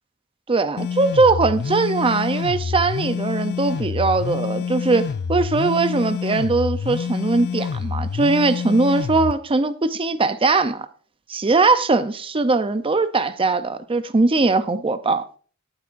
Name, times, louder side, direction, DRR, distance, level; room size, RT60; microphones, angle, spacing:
voice 1, 0.5-10.9 11.3-15.2, right 3 dB, 25° right, 0.6 m, -20 dB
sound 1, 0.8-9.3, left 6 dB, 45° left, 0.4 m, -27 dB
18.0 x 8.4 x 2.6 m
head